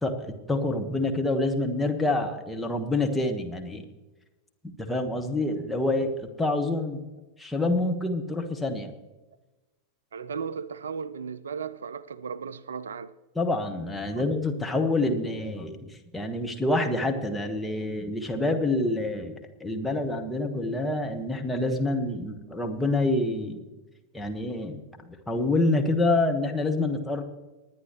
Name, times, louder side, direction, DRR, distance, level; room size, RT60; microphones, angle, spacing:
voice 1, 0.0-3.8 4.8-6.1 6.4-7.0 7.4-8.9 13.3-23.6 24.1-27.2, left 2 dB, 5° left, 1.4 m, -27 dB
voice 2, 10.1-13.1 14.1-14.2, right 6 dB, 70° right, 0.4 m, -36 dB
20.0 x 9.7 x 3.1 m
figure-of-eight pair, 90°, 0 cm